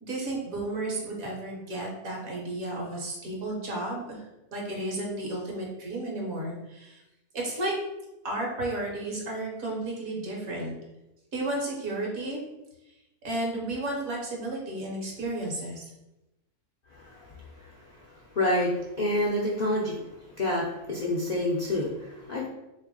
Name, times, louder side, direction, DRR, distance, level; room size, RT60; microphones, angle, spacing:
voice 1, 0.0-4.2 4.5-7.0 7.3-7.8 8.2-10.7 11.3-12.4 13.2-15.9, right 2 dB, 65° right, -2 dB, 1.5 m, -33 dB
voice 2, 18.3-18.7 19.0-19.9 20.4-20.6 20.9-22.5, left 1 dB, 70° left, -4 dB, 0.4 m, -27 dB
3.4 x 3.3 x 3.7 m, 0.95 s
omnidirectional pair, 1.6 m